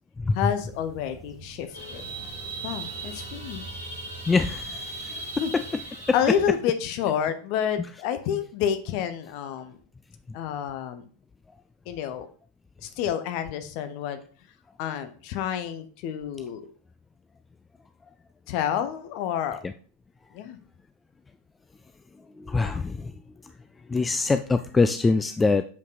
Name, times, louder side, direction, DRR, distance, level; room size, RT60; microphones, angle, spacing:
voice 1, 0.3-2.1 2.6-3.6 5.4-5.5 6.1-9.8 10.3-11.0 11.9-12.3 12.8-14.2 14.8-16.6 18.5-19.6 20.3-20.6, left 9 dB, 45° left, 10 dB, 0.9 m, -29 dB
sound 1, 0.6-6.6, right 4 dB, 25° right, 1.3 m, -46 dB
sound 2, 1.7-6.5, right 2 dB, 85° left, 3.9 m, -38 dB
voice 2, 4.3-5.2 5.5-5.6 6.1-6.2 19.6-19.7 22.4-23.1 23.9-25.6, left 3 dB, 10° left, 9 dB, 0.3 m, -24 dB
7.1 x 5.3 x 4.0 m, 0.43 s
figure-of-eight pair, 90°, 0 cm